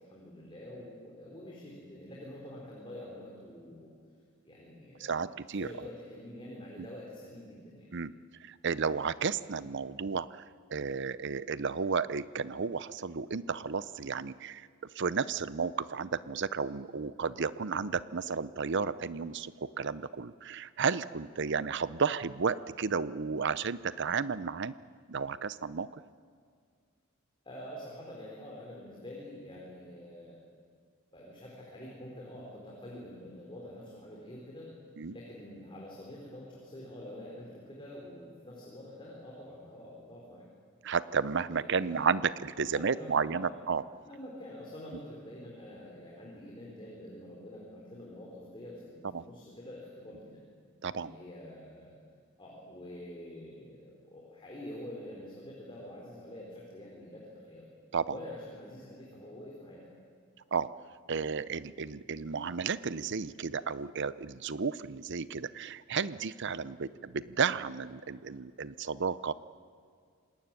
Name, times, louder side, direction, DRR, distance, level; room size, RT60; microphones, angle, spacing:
voice 1, 0.0-3.9 4.4-5.2 5.5-7.9 27.4-30.4 31.1-34.7 35.1-40.4 41.5-42.1 42.7-43.6 44.0-50.4 51.0-51.9 52.4-57.6 58.1-60.0, left 1 dB, 25° left, -4 dB, 4.4 m, -46 dB
voice 2, 5.0-5.7 7.9-8.1 8.5-10.3 10.7-14.7 15.0-24.7 25.1-25.9 35.0-35.1 40.8-43.8 49.1-49.2 50.8-51.1 57.9-58.1 60.5-60.7 61.1-69.3, right 5 dB, 60° right, 16 dB, 0.7 m, -32 dB
27.0 x 20.0 x 9.0 m, 2.1 s
head